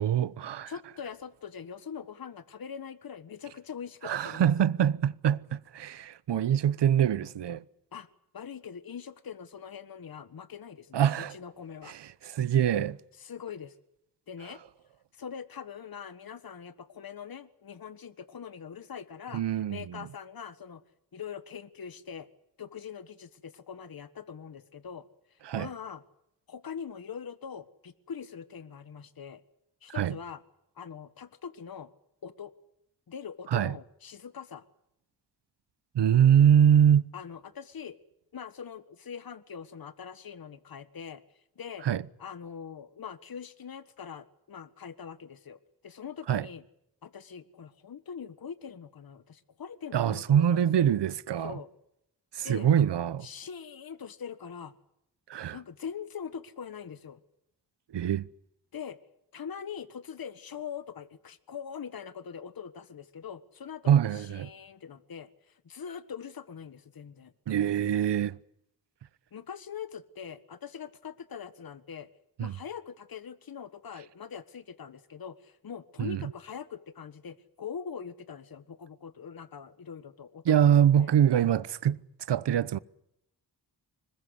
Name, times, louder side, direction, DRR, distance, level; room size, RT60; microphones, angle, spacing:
voice 1, 0.0-0.7 4.0-7.6 10.9-11.4 11.9-13.0 19.3-20.1 25.4-25.7 29.9-30.2 33.5-33.7 35.9-37.1 41.8-42.0 46.3-46.5 49.9-51.6 52.3-53.3 55.3-55.6 57.9-58.3 63.9-64.5 67.5-68.4 72.4-72.5 76.0-76.2 80.4-82.0 82.3-82.8, right 9 dB, 75° right, 1.0 m, -24 dB
voice 2, 0.7-4.5 7.9-8.1 8.3-12.0 13.2-13.7 14.3-14.6 15.1-19.4 19.7-20.8 21.1-22.3 22.6-26.0 26.5-29.4 29.8-30.4 30.8-31.9 32.2-32.5 33.1-34.6 37.1-38.0 38.3-41.2 41.5-41.9 42.2-46.6 47.0-50.8 51.4-51.7 52.4-52.7 53.2-54.7 55.5-57.2 58.7-59.0 59.3-67.3 69.3-72.1 72.4-80.7 81.0-81.1, left 7 dB, 55° left, 1.6 m, -42 dB
25.5 x 21.0 x 8.1 m
cardioid pair, 75°, 41 cm